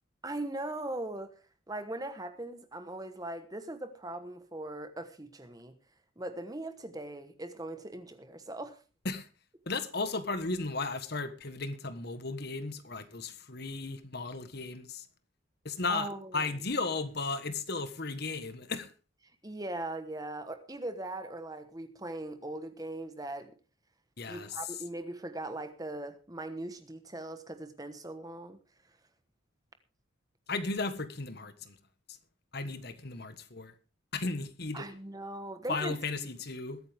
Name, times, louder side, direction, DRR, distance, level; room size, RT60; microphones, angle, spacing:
voice 1, 0.2-1.4 1.7-5.8 6.2-8.8 15.9-16.5 19.4-23.6 24.3-28.6 34.7-36.0, right 1 dB, 20° right, 1.2 m, -40 dB
voice 2, 9.7-15.0 15.6-18.9 24.2-24.6 30.5-31.8 32.5-33.7 34.1-34.9 35.7-36.8, left 3 dB, 50° left, 1.4 m, -35 dB
21.5 x 9.1 x 3.5 m
head